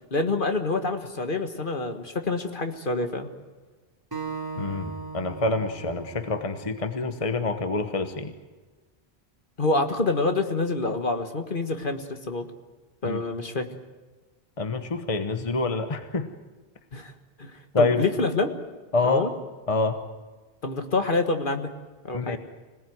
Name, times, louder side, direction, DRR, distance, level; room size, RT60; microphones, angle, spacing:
voice 1, 0.1-3.3 9.6-12.5 13.0-13.7 16.9-17.1 17.4-17.5 17.8-18.6 19.0-19.3 20.6-21.7 22.0-22.4, left 3 dB, 55° left, 6 dB, 1.8 m, -26 dB
Acoustic guitar, 4.1-7.4, right 5 dB, 20° right, 3.3 m, -38 dB
voice 2, 4.6-8.3 13.0-13.2 14.6-16.3 17.7-18.0 18.9-19.3 19.7-20.0 22.1-22.4, left 3 dB, 35° left, 8 dB, 1.2 m, -26 dB
26.0 x 18.0 x 9.4 m, 1.3 s
omnidirectional pair, 1.1 m